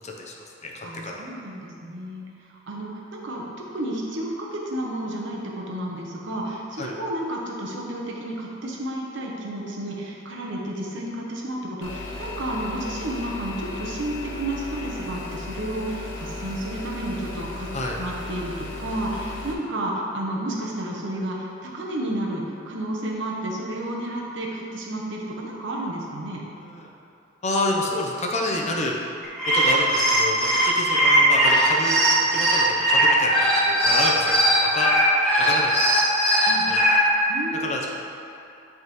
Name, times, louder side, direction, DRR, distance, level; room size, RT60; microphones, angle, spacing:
voice 1, 0.0-0.3 0.6-1.2 6.8-6.9 17.7-18.0 26.6-26.9 27.4-29.0 29.5-34.9 35.4-35.7 36.4-36.8 37.6-37.9, left 2 dB, 35° left, -1 dB, 0.6 m, -28 dB
voice 2, 0.8-2.2 2.7-3.4 3.7-17.7 18.0-26.4 36.4-36.7 37.3-37.7, right 1 dB, 70° right, -2 dB, 0.9 m, -31 dB
sound 1, 11.8-19.5, left 2 dB, 90° left, 0.7 m, -35 dB
sound 2, 29.2-37.0, right 1 dB, 5° left, 1.3 m, -19 dB
9.2 x 3.6 x 3.1 m, 2.7 s
head